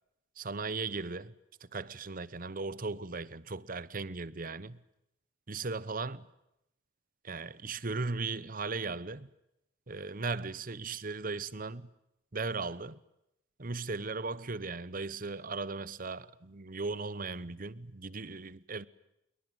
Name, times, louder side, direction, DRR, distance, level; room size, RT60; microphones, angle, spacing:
voice 1, 0.4-1.3 1.6-4.8 5.5-6.3 7.2-9.3 9.9-11.9 12.3-13.0 13.6-18.9, right 3 dB, 45° right, 1.0 m, -37 dB
26.5 x 22.5 x 8.9 m
head